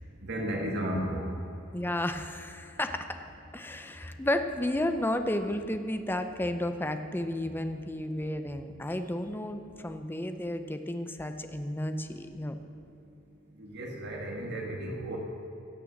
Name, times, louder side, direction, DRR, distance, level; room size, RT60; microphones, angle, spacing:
voice 1, 0.2-1.3 13.6-15.2, right 1 dB, 55° right, 0 dB, 1.7 m, -33 dB
voice 2, 1.7-3.2 3.5-12.6, left 1 dB, 10° left, 8 dB, 0.6 m, -32 dB
17.0 x 6.8 x 7.3 m, 2.8 s
head